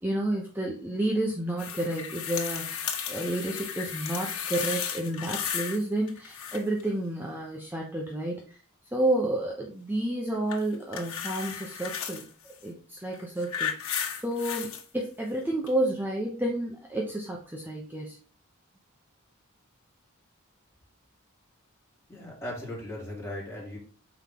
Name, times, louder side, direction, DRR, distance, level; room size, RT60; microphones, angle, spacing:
voice 1, 0.0-8.6 8.9-18.2, right 1 dB, 10° right, -1 dB, 0.9 m, -30 dB
sound 1, 1.6-5.8 6.1-6.8 10.5-12.2 13.1-14.8 15.7-15.8, left 8 dB, 90° left, 1.2 m, -34 dB
voice 2, 22.1-23.8, left 1 dB, 15° left, -5 dB, 3.0 m, -37 dB
6.0 x 4.4 x 3.7 m, 0.40 s
head